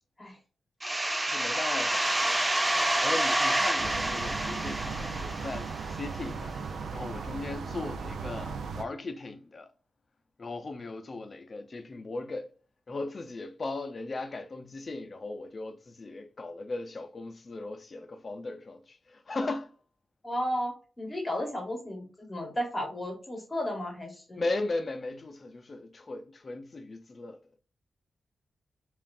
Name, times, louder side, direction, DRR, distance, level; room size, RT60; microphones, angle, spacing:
sound 1, 0.8-6.3, right 1 dB, 15° right, 0.5 m, -28 dB
voice 1, 1.3-2.5 3.0-6.6 6.9-9.7 10.4-12.5 12.9-19.7 24.3-27.6, left 2 dB, 40° left, 0.5 m, -37 dB
sound 2, 3.8-8.8, right 5 dB, 85° right, 0.5 m, -37 dB
voice 2, 20.2-24.4, equal, 20° left, 1.1 m, -34 dB
5.4 x 2.5 x 2.5 m
wide cardioid pair, 110°, 0 cm